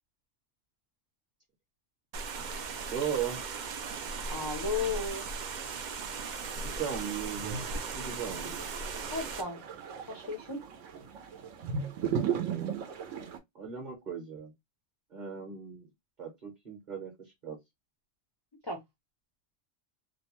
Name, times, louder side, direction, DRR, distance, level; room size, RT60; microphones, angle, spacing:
sound 1, 2.1-9.4, right 4 dB, 65° right, 0.5 m, -38 dB
voice 1, 2.9-3.4 6.6-8.5 12.2-12.7 13.5-14.5 15.1-15.9 16.2-17.6, right 7 dB, 40° right, 1.0 m, -37 dB
voice 2, 4.3-5.5 9.1-9.6 10.1-10.6 18.6-18.8, left 3 dB, 35° left, 0.4 m, -34 dB
sound 2, 6.6-13.4, right 7 dB, 80° right, 1.0 m, -37 dB
2.8 x 2.1 x 2.9 m
omnidirectional pair, 1.3 m